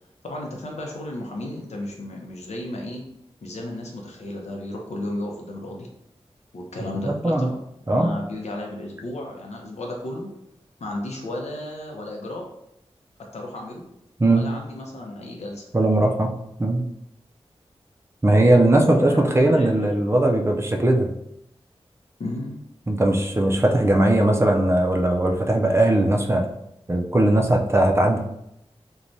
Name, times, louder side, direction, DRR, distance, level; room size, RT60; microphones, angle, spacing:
voice 1, 0.2-3.0 3.4-5.9 6.5-7.6 7.9-10.3 10.8-12.4 13.3-13.8 14.3-15.7 18.9-19.2 19.5-19.9 22.2-22.5, left 1 dB, 85° left, 0 dB, 0.6 m, -33 dB
voice 2, 7.1-7.5 7.9-8.1 14.2-14.4 15.7-16.3 16.6-16.8 18.2-21.1 22.9-26.4 26.9-28.2, right 1 dB, 25° right, 2 dB, 0.4 m, -19 dB
3.1 x 2.2 x 2.6 m, 0.80 s
wide cardioid pair, 80°, 11 cm